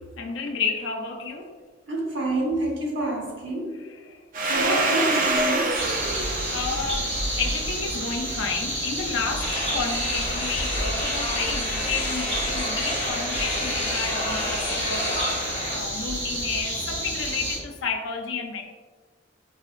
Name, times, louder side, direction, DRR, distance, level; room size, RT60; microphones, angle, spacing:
voice 1, 0.2-1.6 3.8-4.2 4.5-5.1 5.9-18.6, left 5 dB, 75° left, 3 dB, 0.5 m, -32 dB
voice 2, 1.9-3.8 4.5-5.8, right 1 dB, 70° right, -2 dB, 0.9 m, -28 dB
Domestic sounds home sounds, 4.3-8.8, right 2 dB, 45° right, 0.5 m, -27 dB
sound 1, 5.7-17.6, right 1 dB, 30° right, 1.5 m, -30 dB
sound 2, 9.4-15.8, left 1 dB, 35° left, 1.0 m, -30 dB
4.2 x 2.8 x 2.4 m, 1.4 s
head